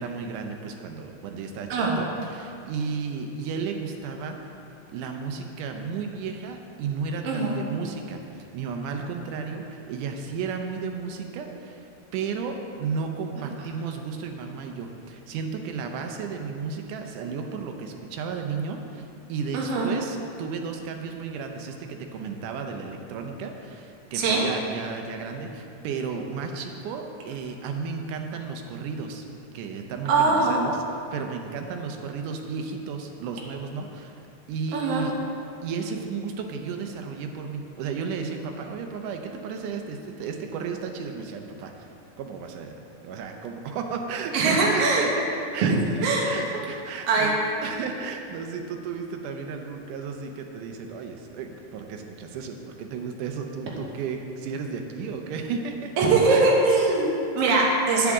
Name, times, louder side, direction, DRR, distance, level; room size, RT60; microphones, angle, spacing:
voice 1, 0.0-1.7 2.0-4.4 4.9-29.3 29.5-30.8 31.1-34.2 34.5-35.2 35.6-41.9 42.2-42.7 43.0-45.2 45.5-47.4 47.6-55.9 56.3-56.5 57.6-57.8, right 5 dB, 90° right, 4 dB, 2.3 m, -33 dB
voice 2, 7.2-7.6 19.5-19.9 24.1-24.4 30.1-30.6 34.7-35.0 44.3-45.1 45.6-45.7 46.0-46.3 47.1-47.3 56.0-58.1, right 3 dB, 60° right, -3 dB, 2.0 m, -21 dB
9.8 x 8.7 x 3.6 m, 2.6 s
omnidirectional pair, 3.6 m